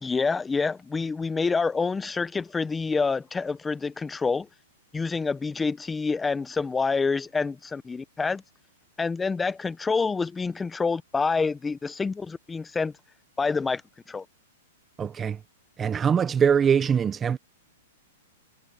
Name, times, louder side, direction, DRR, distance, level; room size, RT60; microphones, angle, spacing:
voice 1, 0.0-4.5 4.9-8.4 9.0-12.9 13.4-13.8 14.1-14.2, left 4 dB, 10° left, 1.1 m, -27 dB
voice 2, 15.0-15.4 15.8-17.4, right 7 dB, 20° right, 0.8 m, -22 dB
hypercardioid pair, 130°, 0 cm